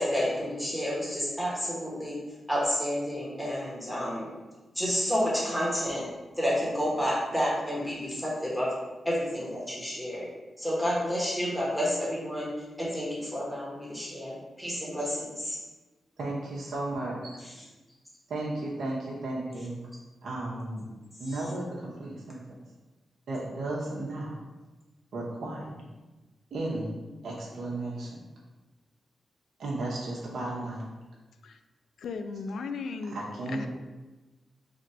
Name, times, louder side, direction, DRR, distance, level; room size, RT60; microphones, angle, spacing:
voice 1, 0.0-2.2 2.5-4.3 4.7-6.0 6.4-8.7 9.0-10.3 10.6-15.6 17.4-17.6 21.2-21.5, equal, ahead, -6 dB, 1.1 m, -30 dB
voice 2, 16.2-17.3 18.3-19.8 20.2-20.9 21.2-22.4 23.3-24.3 25.1-25.8 26.5-26.9 27.2-28.2 29.6-30.9 33.1-33.7, right 2 dB, 80° right, -5 dB, 0.8 m, -34 dB
voice 3, 32.0-33.2 33.5-33.7, left 4 dB, 80° left, 7 dB, 0.3 m, -36 dB
3.5 x 2.4 x 4.1 m, 1.2 s
wide cardioid pair, 120°, 0 cm